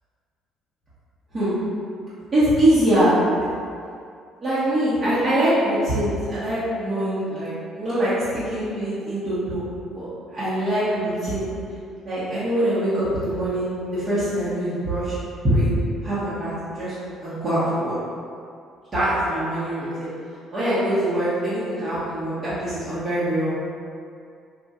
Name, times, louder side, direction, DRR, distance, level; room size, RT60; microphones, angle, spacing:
voice 1, 2.3-3.2 4.4-9.6 9.9-11.4 12.0-15.2 15.4-15.7 16.0-16.9 17.2-18.0 18.9-20.1 20.5-23.5, right 1 dB, 35° right, -14 dB, 0.9 m, -23 dB
4.1 x 2.4 x 2.4 m, 2.4 s
cardioid pair, 125°, 0 cm